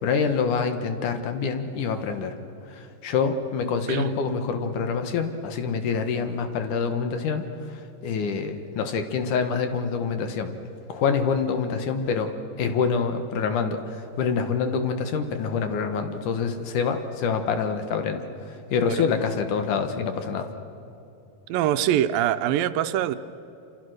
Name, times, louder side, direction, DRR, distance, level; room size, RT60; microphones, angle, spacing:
voice 1, 0.0-2.4 2.7-10.5 10.9-12.3 12.6-20.5, left 5 dB, 65° left, 7 dB, 2.6 m, -26 dB
voice 2, 21.5-23.2, right 11 dB, 80° right, 11 dB, 2.4 m, -23 dB
27.5 x 27.0 x 6.5 m, 2.9 s
omnidirectional pair, 4.1 m